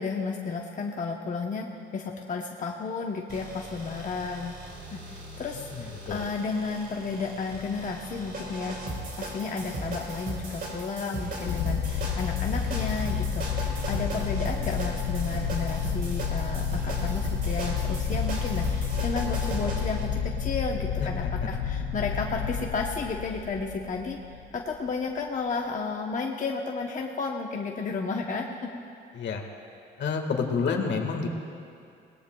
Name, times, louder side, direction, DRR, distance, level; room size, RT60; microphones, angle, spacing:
voice 1, 0.0-1.7 1.9-8.8 9.2-28.8, left 4 dB, 40° left, 1 dB, 0.9 m, -33 dB
sound 1, 3.3-20.0, right 1 dB, 50° right, 4.1 m, -37 dB
voice 2, 5.5-6.3 22.1-22.2 29.1-29.4 30.0-31.3, left 5 dB, 65° left, 3 dB, 1.7 m, -29 dB
sound 2, 11.5-24.5, left 7 dB, 85° left, 0.8 m, -30 dB
21.5 x 18.5 x 2.3 m, 2.5 s
cardioid pair, 90°, 20 cm